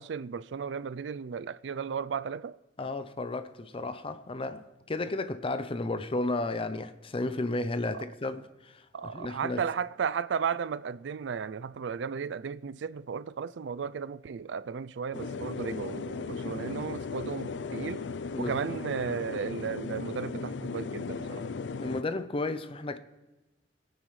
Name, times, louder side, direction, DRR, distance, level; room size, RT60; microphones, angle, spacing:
voice 1, 0.0-2.6 7.9-8.1 8.9-18.1 18.4-21.4, right 6 dB, 75° right, 0.4 m, -34 dB
voice 2, 2.8-4.6 4.9-9.6 16.3-16.5 18.3-18.5 21.8-23.0, left 2 dB, 30° left, 0.6 m, -33 dB
sound 1, 15.1-22.0, left 4 dB, 75° left, 0.5 m, -36 dB
24.5 x 9.4 x 3.2 m
head